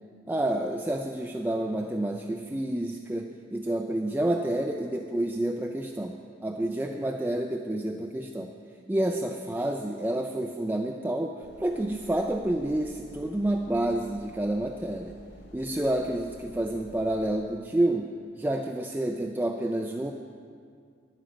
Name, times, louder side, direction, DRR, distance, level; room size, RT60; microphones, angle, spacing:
voice 1, 0.3-8.5 8.9-15.1 15.5-18.1 18.4-20.1, right 1 dB, 10° right, 2 dB, 0.3 m, -29 dB
sound 1, 11.4-17.3, equal, 60° left, 1.7 m, -50 dB
11.5 x 10.5 x 5.1 m, 2.1 s
head